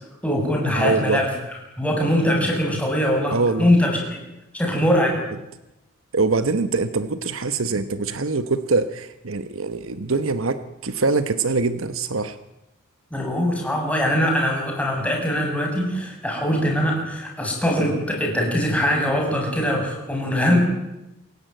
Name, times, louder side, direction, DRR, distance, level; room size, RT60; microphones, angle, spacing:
voice 1, 0.2-1.3 1.8-4.2 4.5-5.2 13.1-20.6, equal, 5° left, 0 dB, 7.3 m, -22 dB
voice 2, 0.7-1.2 3.3-3.7 6.1-12.4, right 3 dB, 70° right, 11 dB, 1.1 m, -23 dB
27.0 x 17.0 x 9.2 m, 0.93 s
head